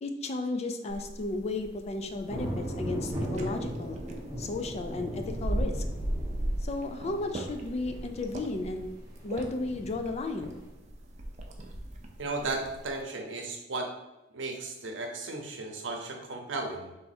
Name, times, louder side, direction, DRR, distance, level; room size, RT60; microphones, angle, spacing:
voice 1, 0.0-4.0 4.4-5.8 6.6-8.9 9.2-10.6, left 2 dB, 35° left, 6 dB, 0.4 m, -34 dB
Gulping water, 0.9-13.0, right 1 dB, 40° right, 0.5 m, -38 dB
sound 1, 2.3-10.7, equal, 15° right, 1.2 m, -39 dB
voice 2, 12.2-13.9 14.3-17.0, right 3 dB, 80° right, 3 dB, 0.8 m, -35 dB
3.4 x 3.3 x 4.2 m, 0.98 s
head